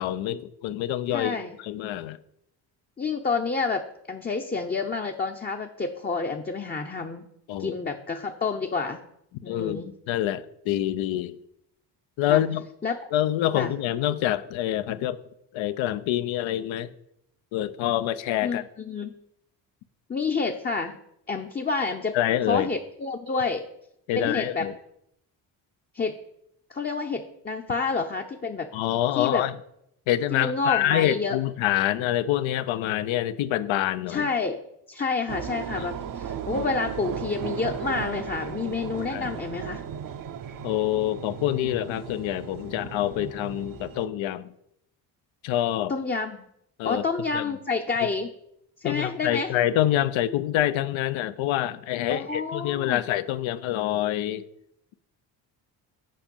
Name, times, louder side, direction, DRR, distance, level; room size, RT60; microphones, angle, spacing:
voice 1, 0.0-1.4 1.6-2.2 7.5-7.8 9.5-11.3 12.2-12.7 13.1-15.2 15.5-16.9 17.5-18.7 22.1-22.7 24.1-24.7 28.7-29.5 30.1-34.3 35.8-35.9 36.6-36.7 39.1-39.3 40.6-44.5 45.4-45.9 46.8-47.0 47.3-47.4 48.8-54.4, left 13 dB, 75° left, 0.7 m, -26 dB
voice 2, 1.1-1.6 3.0-7.3 7.6-9.0 9.4-9.9 12.3-12.4 12.8-13.0 13.5-13.7 18.4-19.1 20.1-21.0 21.3-22.1 22.5-23.6 24.1-24.7 25.9-26.1 26.7-28.7 29.2-29.4 30.3-31.4 34.1-34.6 34.9-39.8 45.9-46.4 46.8-48.3 48.8-49.5 52.1-53.0, left 4 dB, 20° left, 0.7 m, -29 dB
sound 1, 35.3-44.1, right 8 dB, 45° right, 0.6 m, -36 dB
7.6 x 4.4 x 5.3 m
supercardioid pair, 60°, 48 cm